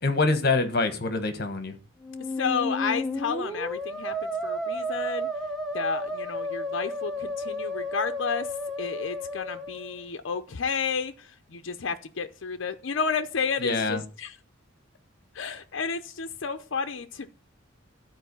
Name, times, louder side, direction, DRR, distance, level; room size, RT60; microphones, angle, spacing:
voice 1, 0.0-1.8 13.6-14.0, left 3 dB, 50° left, 1.4 m, -25 dB
Musical instrument, 2.0-10.1, left 1 dB, ahead, 1.0 m, -32 dB
voice 2, 2.4-5.3 5.7-8.5 8.8-14.3 15.3-17.3, left 5 dB, 70° left, 0.6 m, -31 dB
12.5 x 4.6 x 6.9 m
head